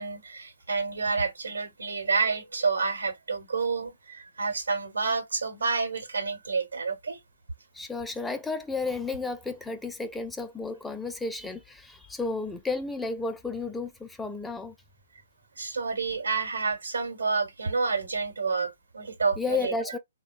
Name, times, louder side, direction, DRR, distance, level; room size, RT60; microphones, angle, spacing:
voice 1, 0.0-7.2 15.6-20.0, right 4 dB, 75° right, 1.1 m, -29 dB
voice 2, 7.7-14.7 19.4-20.0, left 3 dB, 5° left, 0.4 m, -32 dB
3.6 x 2.2 x 2.3 m
figure-of-eight pair, 125°, 0 cm